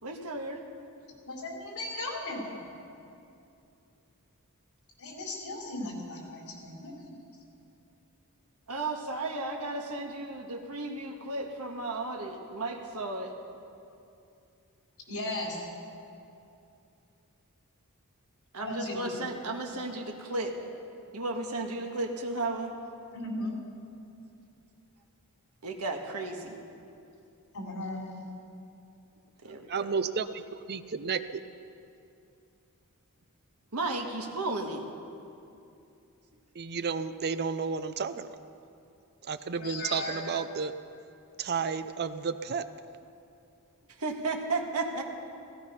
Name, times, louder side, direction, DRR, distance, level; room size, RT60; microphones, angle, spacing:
voice 1, 0.0-0.6 8.7-13.3 18.5-20.6 21.1-22.7 25.6-26.6 29.4-29.9 33.7-34.9 43.9-45.0, right 2 dB, 85° right, 3 dB, 1.7 m, -34 dB
voice 2, 1.2-2.7 5.0-7.2 15.1-15.6 18.6-19.1 23.1-23.5 27.5-28.0 39.6-40.2, left 1 dB, 75° left, -2 dB, 4.0 m, -36 dB
voice 3, 29.7-30.4 30.7-31.4 36.6-38.3 39.3-40.7 41.4-42.6, right 5 dB, 45° right, 12 dB, 0.5 m, -32 dB
16.0 x 16.0 x 5.7 m, 2.6 s
head